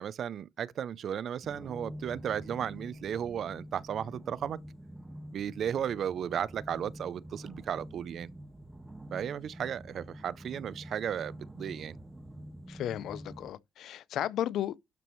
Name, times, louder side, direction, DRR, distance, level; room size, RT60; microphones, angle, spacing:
voice 1, 0.0-4.6 5.3-8.3 9.1-12.0, right 9 dB, 65° right, 0.5 m, -35 dB
sound 1, 1.4-13.5, equal, 15° right, 1.6 m, -47 dB
voice 2, 12.7-14.8, left 11 dB, 80° left, 0.6 m, -34 dB
12.0 x 6.2 x 3.1 m
cardioid pair, 90°, 0 cm